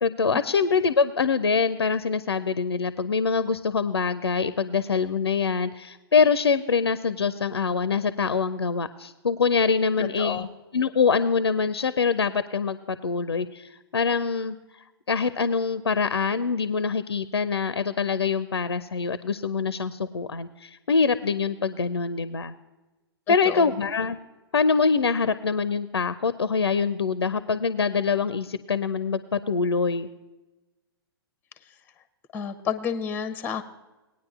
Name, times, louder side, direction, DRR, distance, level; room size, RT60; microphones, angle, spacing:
voice 1, 0.0-10.5 10.7-14.6 15.1-22.5 23.3-24.2 24.5-30.1, left 5 dB, 80° left, 14 dB, 0.4 m, -24 dB
voice 2, 10.0-10.5 23.3-23.8 32.3-33.6, left 7 dB, 15° left, 10 dB, 0.6 m, -30 dB
19.5 x 9.4 x 2.4 m, 1.1 s
figure-of-eight pair, 105°, 13 cm